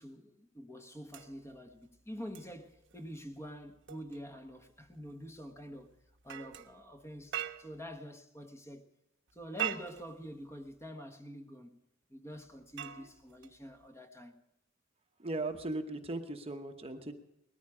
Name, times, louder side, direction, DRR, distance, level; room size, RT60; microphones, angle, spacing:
voice 1, 0.0-5.9 6.2-8.9 9.3-11.8 12.1-14.4, equal, 15° left, 1.4 m, -47 dB
sound 1, 1.1-8.0 9.3-10.9 12.3-13.9 15.4-15.6, right 10 dB, 65° right, 1.1 m, -44 dB
voice 2, 15.2-17.1, right 2 dB, 30° right, 1.1 m, -38 dB
20.0 x 14.0 x 5.0 m
head